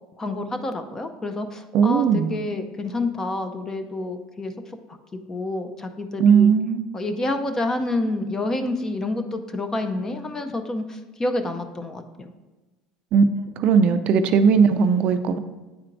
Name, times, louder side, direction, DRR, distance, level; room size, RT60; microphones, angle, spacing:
voice 1, 0.2-4.5 5.1-6.5 6.9-12.3, left 2 dB, 20° left, 8 dB, 0.6 m, -28 dB
voice 2, 1.7-2.3 6.2-6.8 13.1-13.2 13.6-15.4, right 6 dB, 50° right, 10 dB, 0.4 m, -18 dB
9.3 x 4.3 x 2.6 m, 1.2 s
supercardioid pair, 110°, 2 cm